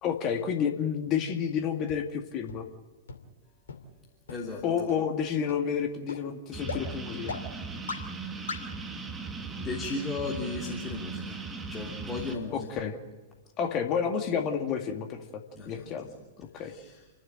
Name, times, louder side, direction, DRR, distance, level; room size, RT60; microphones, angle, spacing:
voice 1, 0.0-2.7 4.6-7.3 12.5-12.9 13.6-16.0 16.4-16.7, left 7 dB, 35° left, 5 dB, 2.1 m, -30 dB
sound 1, 1.9-2.0 2.5-2.6 3.1-3.2 3.7-3.8 4.3-4.4 4.9-5.0 5.5-5.6 6.1-6.2 6.7-6.8 7.3-7.4 7.9-8.0 8.5-8.6, left 5 dB, 70° left, 2.6 m, -35 dB
voice 2, 4.3-4.9 9.5-11.4 11.7-12.8 15.5-16.2 16.6-17.0, left 3 dB, 15° left, -2 dB, 3.2 m, -36 dB
sound 2, 6.5-12.3, right 4 dB, 15° right, 2.1 m, -38 dB
29.5 x 12.0 x 8.8 m, 1.3 s
figure-of-eight pair, 100°, 0 cm